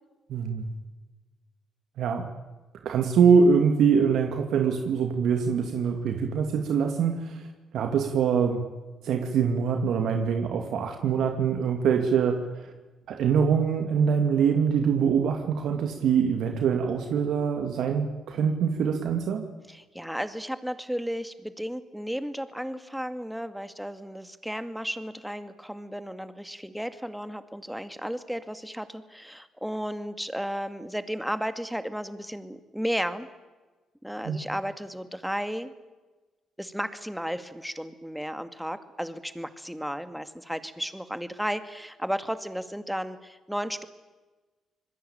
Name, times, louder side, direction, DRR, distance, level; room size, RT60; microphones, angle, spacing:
voice 1, 0.3-0.7 2.0-2.3 2.8-7.4 7.7-8.6 9.0-12.4 13.1-19.4 34.3-34.4, right 6 dB, 75° right, 5 dB, 2.5 m, -24 dB
voice 2, 19.7-33.3 34.0-35.7 36.6-43.9, equal, ahead, 10 dB, 2.2 m, -34 dB
26.0 x 21.0 x 9.0 m, 1.3 s
cardioid pair, 90°, 0 cm